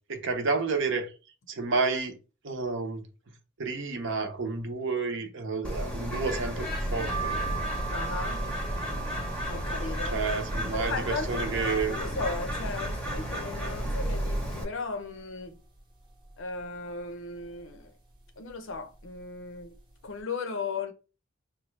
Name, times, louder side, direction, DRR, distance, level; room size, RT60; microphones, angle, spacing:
voice 1, 0.1-1.1 1.5-2.2 2.4-3.0 3.6-7.3 10.1-12.0, right 4 dB, 60° right, 0.8 m, -30 dB
Bird, 5.6-14.6, equal, 5° left, 0.8 m, -32 dB
sound 1, 7.1-12.8 13.2-14.0 14.4-14.5 14.6-15.8 16.2-16.6 17.4-17.7 18.5-18.7 19.0-19.2, right 7 dB, 20° right, 0.9 m, -41 dB
voice 2, 7.9-8.4 9.5-10.2 10.7-15.6 16.4-17.9 18.4-19.7 20.0-20.9, left 4 dB, 60° left, 0.6 m, -36 dB
4.2 x 2.3 x 3.1 m
head